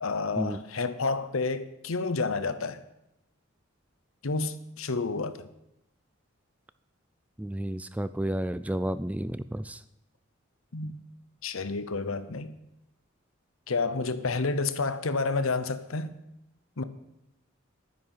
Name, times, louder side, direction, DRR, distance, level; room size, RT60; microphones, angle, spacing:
voice 1, 0.0-2.8 4.2-5.5 10.7-11.0 11.4-12.6 13.7-16.2 16.8-16.9, left 3 dB, 85° left, 0.9 m, -30 dB
voice 2, 7.4-9.8, right 1 dB, 5° right, 0.3 m, -31 dB
11.5 x 9.7 x 5.6 m
head